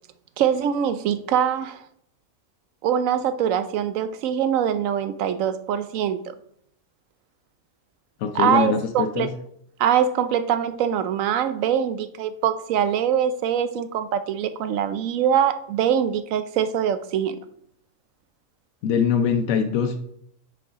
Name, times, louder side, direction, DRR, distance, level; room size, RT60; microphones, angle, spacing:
voice 1, 0.4-1.8 2.8-6.3 8.3-9.3 9.8-17.4, right 9 dB, 80° right, 12 dB, 1.0 m, -23 dB
voice 2, 8.2-9.3 18.8-20.0, left 7 dB, 85° left, 7 dB, 1.1 m, -23 dB
6.0 x 4.8 x 5.0 m, 0.71 s
omnidirectional pair, 1.4 m